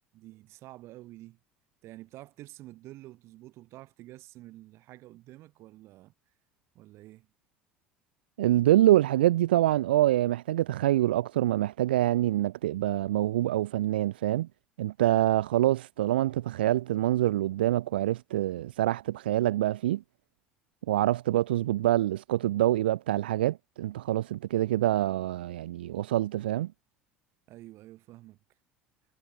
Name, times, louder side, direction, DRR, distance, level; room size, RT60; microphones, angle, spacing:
voice 1, 0.1-1.4 1.8-6.1 6.7-7.3 27.5-28.4, right 17 dB, 55° right, 7.8 m, -49 dB
voice 2, 8.4-14.5 14.8-20.0 20.9-26.7, right 14 dB, 75° right, 0.6 m, -25 dB
figure-of-eight pair, 65°, 5 cm